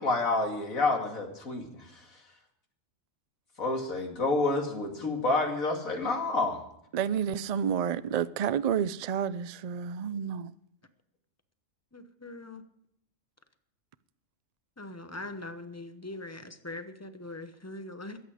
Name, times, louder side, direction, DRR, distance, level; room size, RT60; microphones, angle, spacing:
voice 1, 0.0-2.0 3.6-6.6, left 2 dB, 85° left, 2.7 m, -29 dB
voice 2, 6.9-10.5, right 8 dB, 75° right, 0.3 m, -30 dB
voice 3, 11.9-12.6 14.8-18.2, left 2 dB, 15° left, 0.8 m, -42 dB
21.5 x 8.6 x 5.0 m
omnidirectional pair, 1.4 m